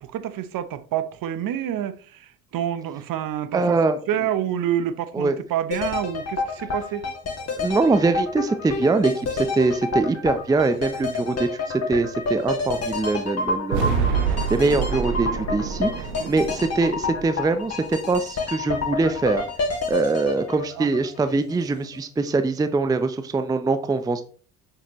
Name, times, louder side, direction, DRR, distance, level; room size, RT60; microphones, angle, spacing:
voice 1, 0.0-3.8 4.1-7.1 11.2-11.3 16.2-16.3 20.8-20.9, right 10 dB, 45° right, 0.8 m, -28 dB
voice 2, 3.5-4.0 5.1-5.4 7.6-14.1 14.5-19.4 19.9-24.2, right 3 dB, 10° right, 0.6 m, -23 dB
sound 1, 5.7-21.6 21.9-22.0, left 3 dB, 30° left, 2.1 m, -29 dB
sound 2, 13.7-17.9, right 6 dB, 75° right, 1.1 m, -27 dB
6.7 x 5.8 x 3.0 m
hypercardioid pair, 60°, 48 cm